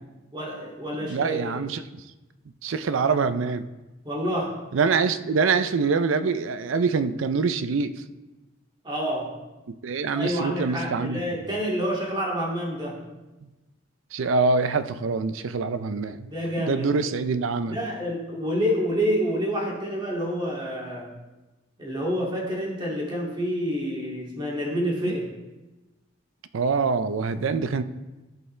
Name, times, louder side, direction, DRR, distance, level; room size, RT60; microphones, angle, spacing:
voice 1, 0.3-1.6 4.0-4.5 8.8-9.3 10.1-13.0 16.3-17.1 17.7-21.1 21.8-25.3, equal, 25° right, 2.3 m, -28 dB
voice 2, 1.0-1.8 2.6-3.7 4.7-7.9 9.8-11.4 14.1-16.3 16.6-17.8 26.5-27.8, right 4 dB, 90° right, 0.5 m, -25 dB
14.5 x 5.5 x 3.3 m
head